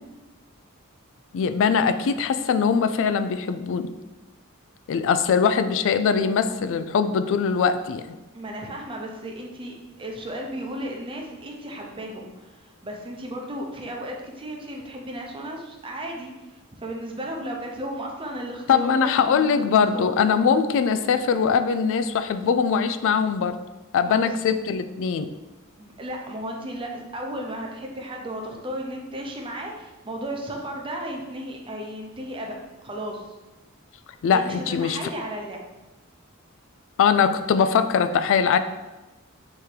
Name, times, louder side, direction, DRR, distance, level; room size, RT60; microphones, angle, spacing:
voice 1, 1.3-3.9 4.9-8.0 18.7-23.6 23.9-25.3 34.2-35.0 37.0-38.6, left 6 dB, 60° left, 11 dB, 0.3 m, -21 dB
voice 2, 8.3-20.2 24.1-24.6 25.8-32.5 32.8-33.4 34.3-35.6, right 1 dB, 25° right, 1 dB, 0.6 m, -34 dB
3.6 x 3.3 x 4.4 m, 1.1 s
head